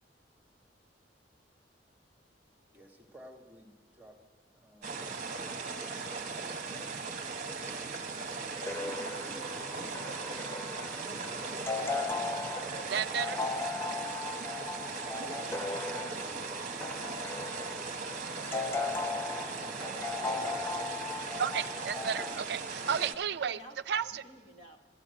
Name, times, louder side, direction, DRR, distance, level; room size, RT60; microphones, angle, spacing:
voice 1, 2.7-4.2 4.5-6.7 7.5-7.7 11.1-12.3 15.1-16.2 19.7-20.8, right 1 dB, 10° right, 1 dB, 1.3 m, -53 dB
sound 1, 4.8-23.1, right 4 dB, 45° right, 1.0 m, -38 dB
voice 2, 7.4-7.8 8.6-11.5 11.7-13.5 15.4-16.4 23.3-24.8, right 2 dB, 40° left, 2 dB, 1.4 m, -50 dB
sound 2, 8.7-22.4, left 3 dB, 15° left, 0.3 m, -38 dB
voice 3, 12.9-13.4 21.4-23.6 23.9-24.2, right 7 dB, 65° right, 12 dB, 0.4 m, -32 dB
13.0 x 8.7 x 7.6 m, 1.5 s
head